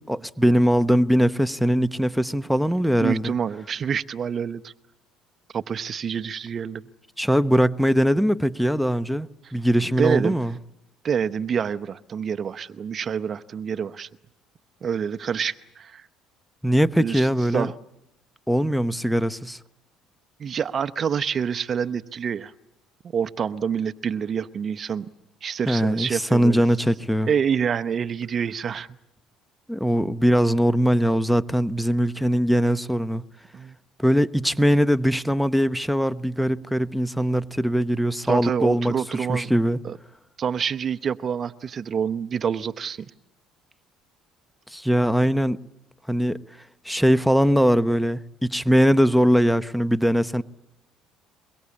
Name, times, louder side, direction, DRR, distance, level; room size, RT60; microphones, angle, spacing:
voice 1, 0.0-3.3 7.2-10.5 16.6-17.7 18.5-19.6 25.7-27.3 29.7-33.2 34.0-39.8 44.7-45.6 46.1-46.4 46.8-50.4, equal, ahead, 0.9 m, -21 dB
voice 2, 3.0-4.7 5.5-6.8 10.0-10.4 11.0-14.1 14.8-16.1 17.0-17.8 20.4-22.5 23.1-25.1 25.4-26.6 27.2-28.9 33.5-33.8 38.3-39.5 39.8-40.0 40.4-43.1, right 7 dB, 40° right, 0.9 m, -27 dB
23.0 x 23.0 x 8.5 m
cardioid pair, 100°, 0 cm